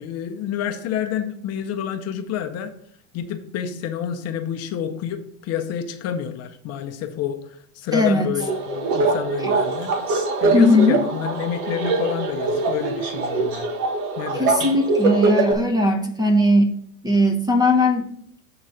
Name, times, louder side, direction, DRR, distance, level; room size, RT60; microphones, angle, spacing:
voice 1, 0.0-2.7 3.1-13.7 14.2-14.7, left 9 dB, 35° left, 6 dB, 0.7 m, -29 dB
voice 2, 7.9-8.3 9.4-9.5 10.5-11.0 14.3-16.7 17.0-18.1, left 1 dB, 10° right, 5 dB, 0.7 m, -18 dB
sound 1, 8.4-15.5, right 3 dB, 75° right, 1.5 m, -23 dB
7.6 x 4.0 x 5.7 m, 0.66 s
supercardioid pair, 130°, 43 cm